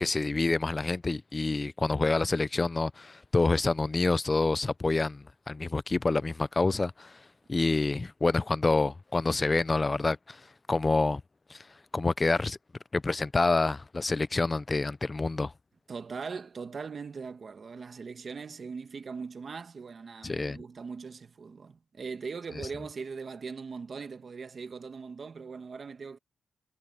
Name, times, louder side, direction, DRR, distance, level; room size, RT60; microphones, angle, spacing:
voice 1, 0.0-7.1 7.5-10.4 10.7-11.2 11.5-11.6 11.9-12.6 12.9-15.5 20.2-20.6, left 3 dB, 25° left, 0.4 m, -27 dB
voice 2, 15.9-26.2, right 5 dB, 40° right, 1.5 m, -40 dB
wide cardioid pair, 145°, 0 cm